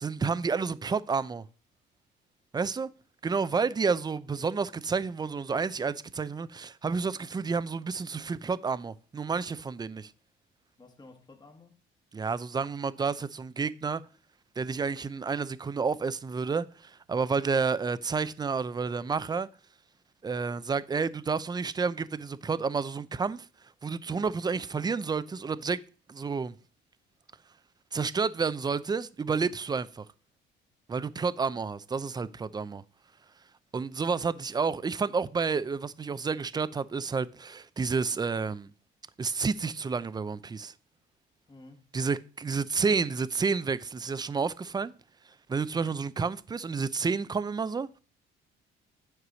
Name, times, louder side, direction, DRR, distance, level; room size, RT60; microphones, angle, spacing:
voice 1, 0.0-1.4 2.5-2.9 3.2-10.1 12.1-14.0 14.6-19.5 20.2-23.5 23.8-25.8 26.1-26.6 27.9-30.0 30.9-32.8 33.7-38.7 39.2-40.7 41.9-44.9 45.5-47.9, right 5 dB, 20° right, 0.5 m, -30 dB
voice 2, 10.8-11.8 41.5-41.9, left 2 dB, 20° left, 1.4 m, -52 dB
9.6 x 4.7 x 6.2 m
cardioid pair, 105°, 21 cm